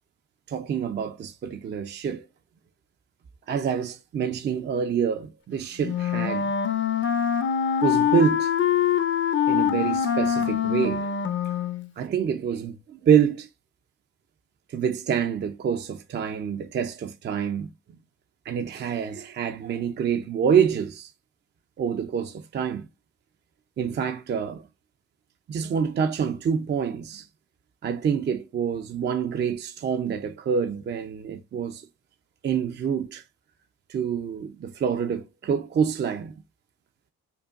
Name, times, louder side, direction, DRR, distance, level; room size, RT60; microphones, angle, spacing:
voice 1, 0.5-2.3 3.5-6.5 7.8-8.5 9.5-11.2 12.0-13.5 14.7-17.7 18.5-21.1 21.8-22.9 23.8-24.7 25.5-27.3 27.8-31.9 32.4-33.2 33.9-36.3, right 7 dB, 35° right, 0.4 m, -26 dB
Wind instrument woodwind instrument, 5.8-11.9, left 8 dB, 40° left, 0.6 m, -24 dB
5.2 x 2.2 x 2.4 m
cardioid pair, 90°, 30 cm